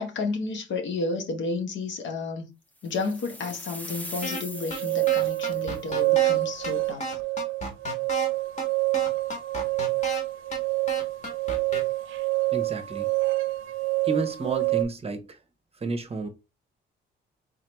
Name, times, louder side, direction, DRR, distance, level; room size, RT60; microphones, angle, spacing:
voice 1, 0.0-2.5 2.8-7.0, left 3 dB, 70° left, 1.1 m, -31 dB
sound 1, 2.9-5.9, left 1 dB, 10° left, 0.6 m, -41 dB
sound 2, 4.2-4.4 4.7-4.8 5.1-6.3 6.6-6.7 7.0-8.3 8.6-8.7 8.9-10.2 10.5-10.6 10.9-11.8, left 1 dB, 35° left, 1.6 m, -32 dB
sound 3, 4.5-14.8, right 21 dB, 85° right, 0.5 m, -27 dB
voice 2, 12.5-13.1 14.0-15.4 15.8-16.3, right 3 dB, 30° right, 0.8 m, -31 dB
3.7 x 3.2 x 3.0 m
cardioid pair, 90°, 20 cm